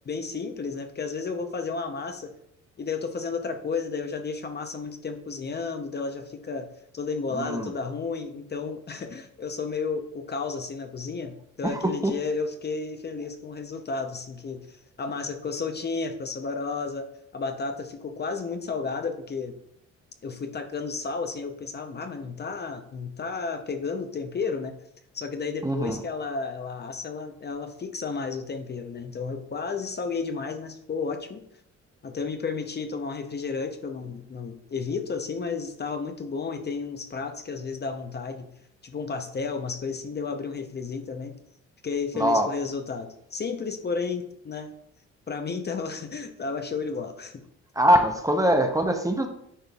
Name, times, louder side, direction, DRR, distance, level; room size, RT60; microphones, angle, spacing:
voice 1, 0.0-2.3 2.8-6.7 6.9-17.1 17.3-19.5 20.2-24.8 25.1-31.4 32.0-38.5 38.8-41.3 41.8-44.7 45.3-47.4, left 4 dB, 35° left, 6 dB, 0.7 m, -32 dB
voice 2, 7.3-7.7 11.6-12.2 25.6-26.0 42.1-42.5 47.8-49.3, right 1 dB, 10° right, 5 dB, 0.7 m, -23 dB
9.9 x 5.1 x 2.4 m, 0.73 s
cardioid pair, 90°, 30 cm